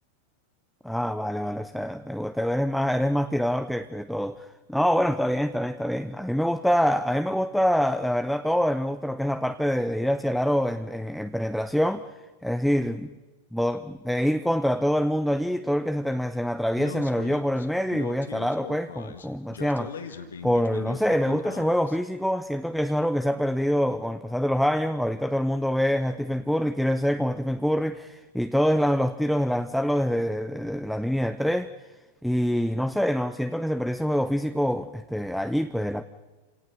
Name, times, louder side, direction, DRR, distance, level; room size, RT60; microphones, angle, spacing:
voice 1, 0.8-12.0 12.4-13.1 13.5-20.2 20.4-31.7 32.2-36.0, equal, ahead, 0.7 m, -25 dB
Speech, 16.8-22.0, left 6 dB, 70° left, 1.8 m, -40 dB
28.5 x 18.0 x 6.8 m
figure-of-eight pair, 90°, 0 cm